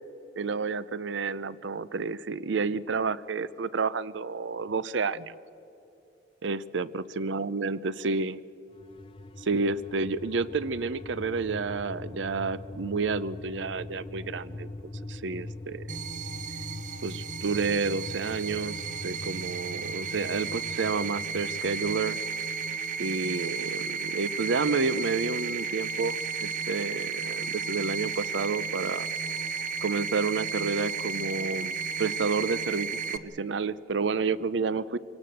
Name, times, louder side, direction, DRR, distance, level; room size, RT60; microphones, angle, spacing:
voice 1, 0.4-5.3 6.4-8.4 9.4-14.7 15.1-15.9 17.0-22.2 23.0-29.1 29.8-35.0, right 4 dB, 75° right, 18 dB, 0.6 m, -30 dB
eerie bell, 8.7-22.0, left 2 dB, 30° left, 0.5 m, -42 dB
sound 1, 15.9-33.2, right 5 dB, 45° right, 0.9 m, -33 dB
26.5 x 18.0 x 7.8 m, 2.9 s
head